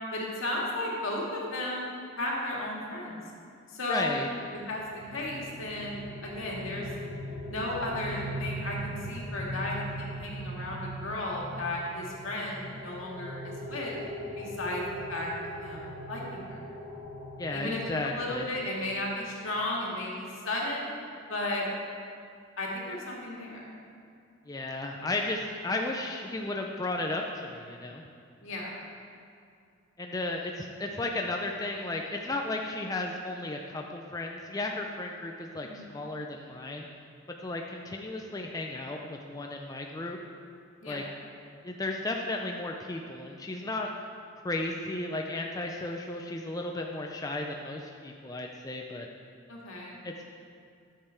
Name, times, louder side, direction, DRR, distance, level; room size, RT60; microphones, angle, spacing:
voice 1, 0.1-1.9 2.2-3.2 3.7-4.2 4.7-4.8 5.1-6.9 7.5-14.0 14.4-14.8 15.1-15.3 15.6-16.6 17.5-20.9 21.3-21.7 22.6-23.7 28.4-28.8 35.6-35.8 40.8-41.0 49.5-50.0, left 1 dB, 75° left, -3 dB, 1.9 m, -34 dB
voice 2, 3.9-4.3 17.4-18.5 24.5-28.0 30.0-36.9 37.4-40.2 40.8-41.0 41.6-43.9 44.4-49.1 50.0-50.2, left 2 dB, 15° left, 1 dB, 0.4 m, -34 dB
sound 1, 4.6-19.3, equal, 30° right, 1.0 m, -40 dB
11.0 x 6.7 x 4.4 m, 2.4 s
head